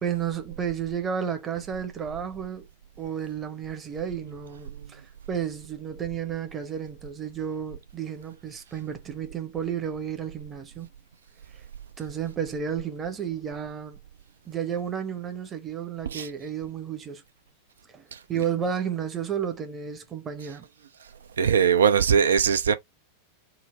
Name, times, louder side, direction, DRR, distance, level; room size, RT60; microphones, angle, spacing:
voice 1, 0.0-2.7 3.0-5.0 5.3-10.9 12.0-14.0 14.4-17.2 17.9-20.7, right 8 dB, 20° right, 0.8 m, -32 dB
voice 2, 21.4-22.7, right 7 dB, 65° right, 0.5 m, -21 dB
3.9 x 2.0 x 3.4 m
figure-of-eight pair, 90°, 0 cm